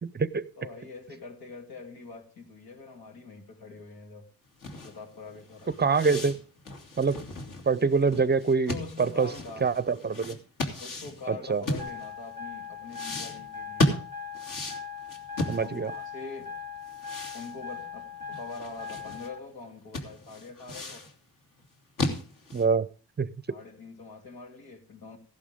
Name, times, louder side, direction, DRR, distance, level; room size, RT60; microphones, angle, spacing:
voice 1, 0.0-0.5 5.8-6.3 7.0-7.2 7.7-9.3 9.6-10.4 11.3-11.6 15.5-15.9 22.5-22.9 23.2-23.3, right 5 dB, 30° right, 0.6 m, -25 dB
voice 2, 0.6-4.2 4.8-5.8 8.6-9.7 10.8-13.9 15.6-16.5 17.3-21.0 23.5-25.2, left 3 dB, 80° left, 3.1 m, -44 dB
sound 1, 4.6-12.3 12.9-16.1 16.3-16.4 16.9-19.3 19.6-19.7 19.9-21.1 21.6-22.7, left 2 dB, 60° left, 3.0 m, -34 dB
sound 2, 11.8-19.4, left 6 dB, 30° left, 3.6 m, -40 dB
16.0 x 11.5 x 3.6 m
cardioid pair, 100°, 36 cm